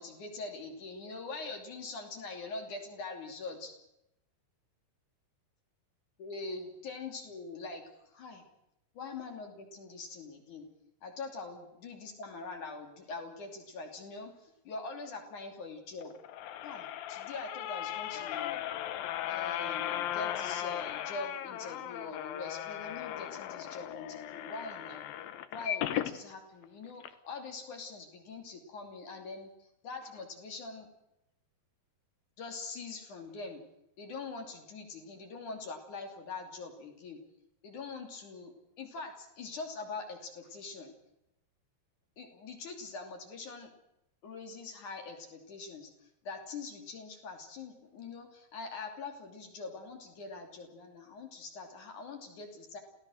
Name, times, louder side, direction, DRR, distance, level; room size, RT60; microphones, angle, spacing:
voice 1, 0.0-3.7 6.2-8.4 8.9-10.7 11.0-16.1 16.6-18.6 19.2-25.1 25.5-29.5 29.8-30.9 32.4-33.6 34.0-37.2 37.6-40.9 42.2-43.7 44.2-45.9 46.2-52.8, left 3 dB, 50° left, 3 dB, 4.2 m, -43 dB
sound 1, 16.0-26.2 26.6-26.7 27.0-27.1, left 12 dB, 70° left, 2.6 m, -37 dB
27.5 x 17.0 x 6.5 m, 0.86 s
omnidirectional pair, 4.6 m